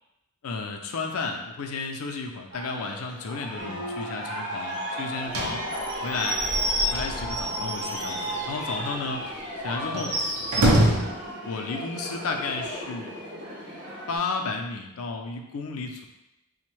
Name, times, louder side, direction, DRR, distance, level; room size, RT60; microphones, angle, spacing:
voice 1, 0.4-5.6 6.0-6.4 6.9-9.2 9.6-10.1 10.6-10.9 11.4-13.2 14.1-16.1, left 4 dB, 75° left, 4 dB, 0.4 m, -32 dB
Aircraft, 2.5-14.2, equal, 20° right, 0.8 m, -35 dB
sound 1, 3.6-4.7, equal, 55° right, 1.0 m, -39 dB
Slam / Squeak / Wood, 5.3-8.5 8.9-9.0 9.3-9.4 9.9-11.2, right 1 dB, 85° right, 0.6 m, -26 dB
3.3 x 2.1 x 3.1 m, 0.90 s
head